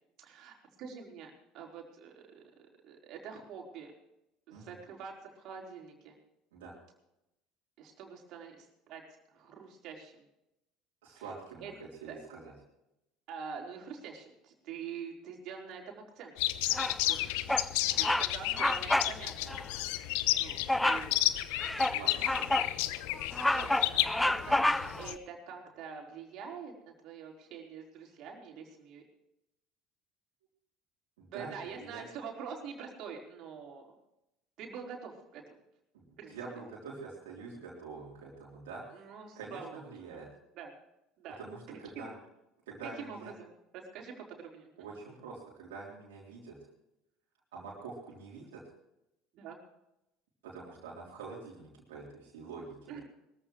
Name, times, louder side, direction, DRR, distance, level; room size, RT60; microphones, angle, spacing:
voice 1, 0.2-2.4 2.8-3.9 4.5-6.1 7.8-9.0 9.3-10.2 11.2-11.3 11.6-11.7 12.1-12.2 13.3-16.3 17.0-17.4 18.0-19.9 20.4-21.6 22.5-22.6 23.5-26.7 27.0-29.0 31.3-33.8 34.6-35.5 36.2-36.3 38.9-40.2 40.6-40.7 41.2-41.4 41.7-42.2 43.0-44.7 49.3-49.6 52.9-53.0, right 6 dB, 55° right, 0 dB, 4.3 m, -45 dB
voice 2, 11.0-12.5 21.9-22.6 31.2-32.0 35.9-39.0 39.3-40.3 41.4-42.1 42.7-43.3 44.8-46.6 47.5-48.6 50.4-53.0, right 4 dB, 70° right, -5 dB, 3.6 m, -46 dB
sound 1, 16.4-25.1, left 16 dB, 65° left, 0.8 m, -32 dB
Bird vocalization bird call bird song, 16.7-17.1 17.5-17.7 18.0-18.3 18.6-19.1 19.5-19.6 20.7-21.1 21.6-22.7 23.1-25.1, left 1 dB, 5° left, 0.6 m, -29 dB
22.0 x 14.5 x 3.2 m, 0.86 s
figure-of-eight pair, 65°, 0 cm